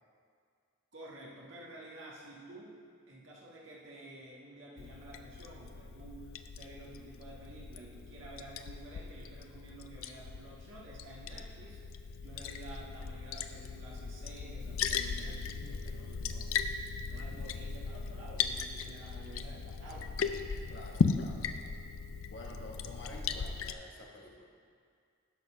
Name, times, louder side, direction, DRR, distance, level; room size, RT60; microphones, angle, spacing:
voice 1, 0.9-2.8 3.1-16.6 17.1-20.2 20.8-20.9, right 1 dB, 65° right, -5 dB, 1.6 m, -51 dB
Liquid, 4.8-23.7, left 5 dB, 80° left, 0.4 m, -37 dB
voice 2, 20.7-21.6 22.3-24.4, left 1 dB, 55° left, -1 dB, 1.2 m, -49 dB
12.0 x 4.3 x 5.5 m, 2.2 s
head